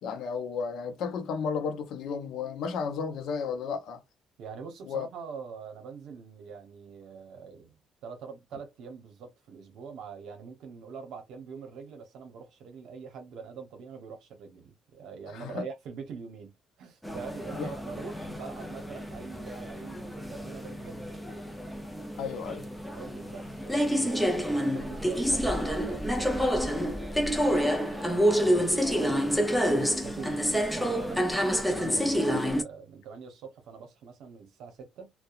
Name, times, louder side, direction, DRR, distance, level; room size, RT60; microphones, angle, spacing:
voice 1, 0.0-4.0 4.9-5.1 15.3-15.6 17.5-17.7 22.2-22.6, left 6 dB, 70° left, 0.6 m, -33 dB
voice 2, 4.4-7.8 8.0-16.5 16.8-21.2 22.9-31.3 31.7-35.1, right 5 dB, 70° right, 0.8 m, -44 dB
sound 1, 17.0-32.6, equal, 5° left, 0.5 m, -28 dB
2.7 x 2.1 x 2.3 m
cardioid pair, 135°, 0 cm